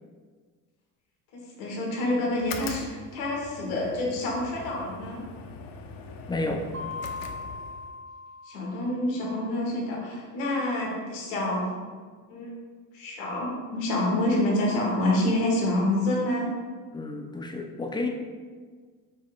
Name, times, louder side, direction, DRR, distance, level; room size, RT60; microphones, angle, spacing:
voice 1, 1.3-5.2 8.4-11.8 12.3-12.5 12.9-16.5, left 1 dB, 80° left, -2 dB, 1.3 m, -27 dB
sound 1, 2.3-8.0, left 5 dB, 55° left, 0.6 m, -42 dB
voice 2, 6.3-6.6 16.9-18.1, left 2 dB, 10° left, 3 dB, 0.5 m, -31 dB
Mallet percussion, 6.7-9.4, left 3 dB, 30° right, 0.6 m, -39 dB
5.2 x 3.6 x 2.4 m, 1.5 s
hypercardioid pair, 60°, 40 cm